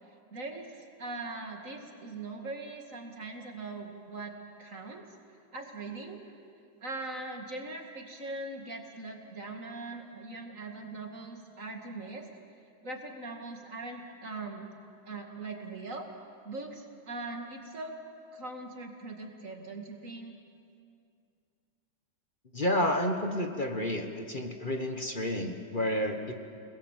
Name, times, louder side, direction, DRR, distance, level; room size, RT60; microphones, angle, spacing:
voice 1, 0.3-4.3 4.6-5.0 5.5-6.2 6.8-12.3 12.8-14.7 15.1-16.1 16.4-18.0 18.3-20.4, right 3 dB, 45° right, 2 dB, 2.7 m, -41 dB
voice 2, 22.5-26.3, left 1 dB, 30° left, 4 dB, 1.4 m, -30 dB
30.0 x 20.5 x 7.5 m, 2.4 s
omnidirectional pair, 1.9 m